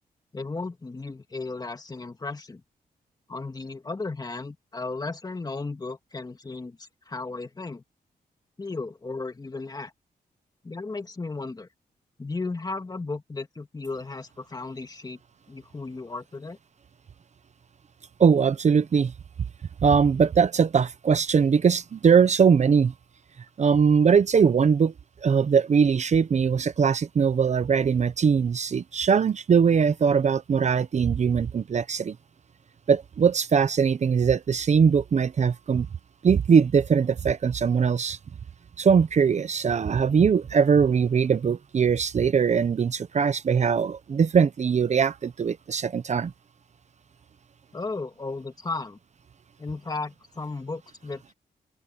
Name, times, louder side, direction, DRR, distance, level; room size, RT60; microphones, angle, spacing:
voice 1, 0.3-2.6 3.3-7.8 8.6-9.9 10.6-11.7 12.2-15.2 15.5-16.6 47.7-49.0 49.6-51.3, left 3 dB, 25° left, 2.3 m, -35 dB
voice 2, 18.2-19.1 19.8-22.9 23.6-24.9 25.2-32.2 32.9-35.9 36.2-38.2 38.8-46.3, right 6 dB, 45° right, 0.8 m, -21 dB
open air
cardioid pair, 105°, 16 cm